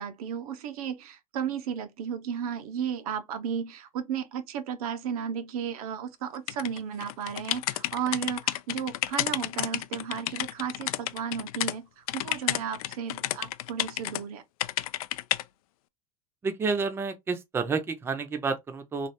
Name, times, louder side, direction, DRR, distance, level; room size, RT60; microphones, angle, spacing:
voice 1, 0.0-14.4, right 8 dB, 80° right, 0.9 m, -34 dB
sound 1, 6.5-11.7 12.1-14.2 14.6-15.4, left 16 dB, 80° left, 0.4 m, -31 dB
voice 2, 16.4-19.1, right 4 dB, 15° right, 0.6 m, -30 dB
3.3 x 2.4 x 4.1 m
supercardioid pair, 150°, 18 cm